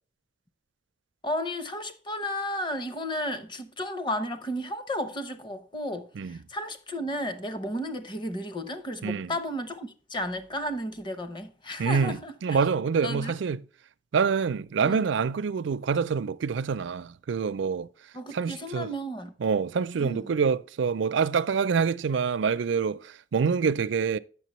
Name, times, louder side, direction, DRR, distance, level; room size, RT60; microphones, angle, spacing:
voice 1, 1.2-12.6 13.0-13.4 14.8-15.0 18.1-19.3 20.0-20.3, equal, 25° left, 0.8 m, -33 dB
voice 2, 11.8-13.6 14.1-17.9 18.3-18.9 19.4-24.2, right 5 dB, 70° right, 0.4 m, -26 dB
9.1 x 7.1 x 3.0 m
head